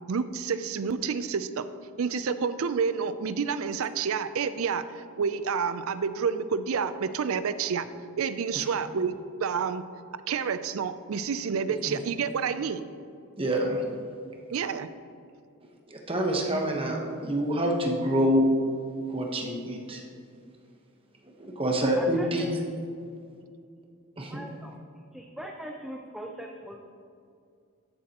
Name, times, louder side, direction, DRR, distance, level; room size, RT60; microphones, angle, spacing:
voice 1, 0.1-1.7 2.0-7.9 8.2-9.1 9.4-9.8 10.1-12.9 14.5-14.9, right 6 dB, 70° right, 13 dB, 0.4 m, -29 dB
voice 2, 11.7-12.0 13.4-13.8 15.9-18.5 19.1-20.0 21.4-22.4 24.2-24.4, equal, 25° right, 1 dB, 1.0 m, -27 dB
voice 3, 22.0-22.5 24.3-24.8 25.1-26.8, equal, ahead, 0 dB, 0.5 m, -40 dB
13.5 x 7.2 x 2.9 m, 2.4 s
head